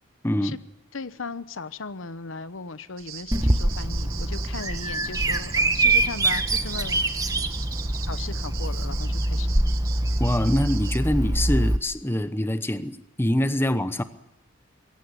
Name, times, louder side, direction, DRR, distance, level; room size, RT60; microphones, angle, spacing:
voice 1, 0.2-0.6 10.2-14.0, left 1 dB, 10° left, 11 dB, 1.0 m, -24 dB
voice 2, 0.9-7.0 8.1-9.6, left 4 dB, 70° left, 14 dB, 0.9 m, -37 dB
sound 1, 3.0-11.0, right 10 dB, 85° right, 2.0 m, -41 dB
Bird vocalization bird call bird song, 3.3-11.8, right 2 dB, 20° right, 1.1 m, -24 dB
22.5 x 17.0 x 9.7 m, 0.87 s
head